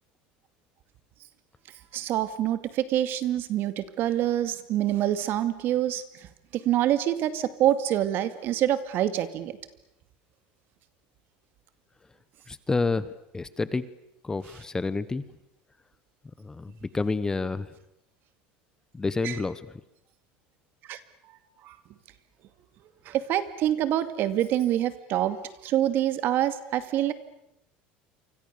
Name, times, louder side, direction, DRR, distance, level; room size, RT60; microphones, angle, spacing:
voice 1, 1.9-9.6 19.2-19.4 20.8-21.0 21.6-21.8 23.1-25.4 25.6-27.1, right 12 dB, 55° right, 11 dB, 2.3 m, -26 dB
voice 2, 12.5-13.9 14.2-15.2 16.4-17.7 18.9-19.7, left 3 dB, 15° left, 15 dB, 1.1 m, -29 dB
28.5 x 25.5 x 6.9 m, 0.82 s
supercardioid pair, 120°, 4 cm